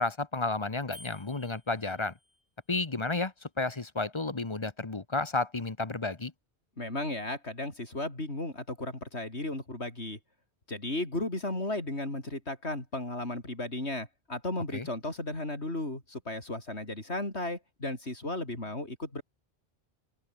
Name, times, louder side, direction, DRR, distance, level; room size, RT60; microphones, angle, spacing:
voice 1, 0.0-2.1 2.7-6.3 14.7-14.9, left 3 dB, 25° left, 1.1 m, -32 dB
sound 1, 0.9-2.5, left 1 dB, 65° left, 8.2 m, -52 dB
voice 2, 6.8-10.2 10.7-19.2, left 2 dB, 90° left, 6.1 m, -35 dB
open air
omnidirectional pair, 1.1 m